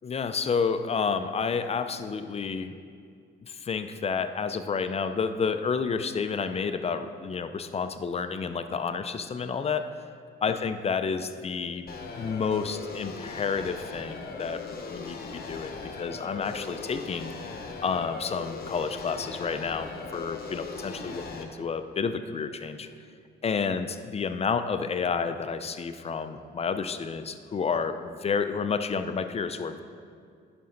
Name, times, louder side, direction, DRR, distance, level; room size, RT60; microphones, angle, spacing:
voice 1, 0.0-2.8 3.4-9.9 10.4-11.8 12.1-17.3 17.8-22.9 23.4-29.8, left 5 dB, 30° left, 9 dB, 0.5 m, -30 dB
sound 1, 11.9-21.4, left 4 dB, 50° left, 1.0 m, -39 dB
11.0 x 5.3 x 3.9 m, 2.3 s
cardioid pair, 90°, 20 cm